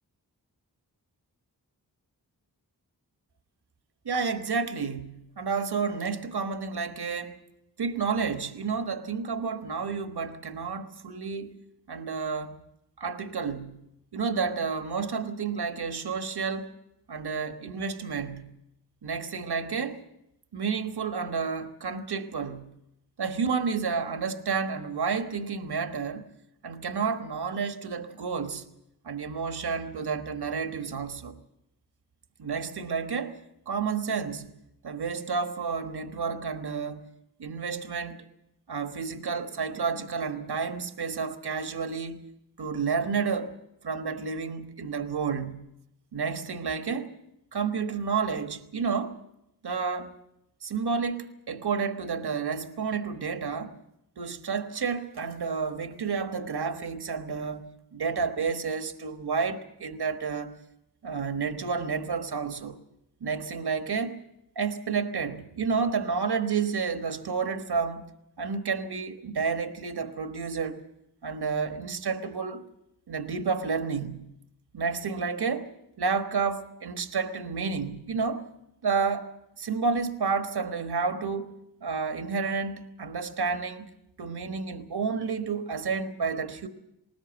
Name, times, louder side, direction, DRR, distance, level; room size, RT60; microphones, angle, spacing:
voice 1, 4.0-7.4 7.8-11.5 11.9-12.6 13.0-13.8 14.1-16.7 17.1-18.6 19.0-20.0 20.5-22.7 23.2-26.3 26.6-28.6 29.0-31.3 32.4-33.4 33.7-34.5 34.8-37.1 37.4-38.2 38.7-42.3 42.6-43.5 43.8-45.7 46.1-47.1 47.5-49.2 49.6-50.1 50.6-53.8 54.2-60.6 61.0-62.8 63.2-64.2 64.5-68.1 68.4-70.8 71.2-72.6 73.1-74.3 74.7-75.7 76.0-78.5 78.8-81.5 81.8-83.9 84.2-86.7, right 5 dB, 75° right, 1.4 m, -30 dB
20.0 x 19.5 x 8.0 m
cardioid pair, 55°, 39 cm